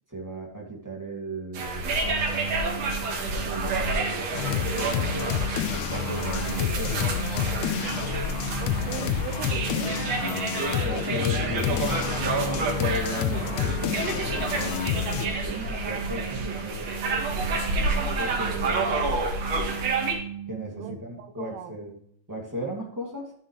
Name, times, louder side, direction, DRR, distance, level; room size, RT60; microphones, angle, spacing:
voice 1, 0.1-2.2 3.1-5.3 6.1-7.0 10.8-14.7 15.2-16.9 17.3-17.5 17.8-18.9 20.5-22.0 22.3-23.3, equal, 5° right, -2 dB, 1.6 m, -36 dB
sound 1, 1.5-20.1, right 3 dB, 60° right, 2.6 m, -29 dB
sound 2, 2.0-21.0, right 8 dB, 25° right, 1.4 m, -38 dB
sound 3, 4.3-15.3, left 11 dB, 80° left, 1.8 m, -29 dB
voice 2, 8.6-10.0 20.8-21.8, right 8 dB, 85° right, 8 dB, 2.7 m, -39 dB
11.5 x 7.6 x 3.2 m, 0.67 s
omnidirectional pair, 3.6 m